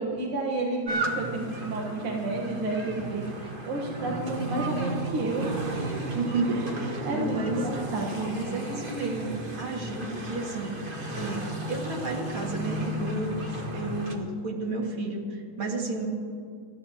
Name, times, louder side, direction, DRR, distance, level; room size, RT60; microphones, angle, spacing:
voice 1, 0.0-5.8 6.0-6.1 6.5-8.6, right 2 dB, 90° right, -1 dB, 2.3 m, -31 dB
sound 1, 0.9-14.2, equal, 30° right, 1.5 m, -35 dB
sound 2, 3.8-8.4, right 3 dB, 50° right, 1.3 m, -34 dB
voice 2, 6.2-7.6 8.2-9.3 9.6-16.1, right 3 dB, 70° right, -1 dB, 2.9 m, -32 dB
27.0 x 13.5 x 2.9 m, 2.4 s
omnidirectional pair, 2.3 m